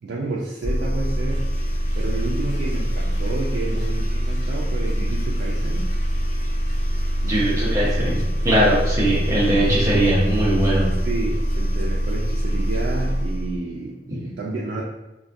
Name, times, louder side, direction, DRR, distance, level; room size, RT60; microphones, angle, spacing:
voice 1, 0.0-1.5 1.9-5.9 7.2-8.1 11.0-14.8, right 3 dB, 70° right, -4 dB, 0.3 m, -31 dB
sound 1, 0.6-13.6, equal, 45° left, 0.4 m, -24 dB
voice 2, 7.3-10.9, right 1 dB, 20° right, -7 dB, 0.6 m, -20 dB
2.2 x 2.2 x 2.6 m, 1.0 s
head